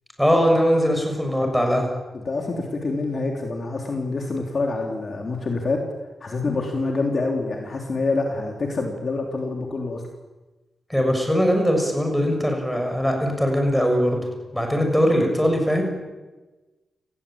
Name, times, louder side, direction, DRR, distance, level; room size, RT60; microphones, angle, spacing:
voice 1, 0.2-1.9 10.9-14.2 14.5-15.8, equal, ahead, 3 dB, 6.6 m, -20 dB
voice 2, 2.1-5.9 6.2-10.0, left 3 dB, 40° left, 2 dB, 3.5 m, -26 dB
30.0 x 19.5 x 8.9 m, 1.2 s
wide cardioid pair, 155°, 0 cm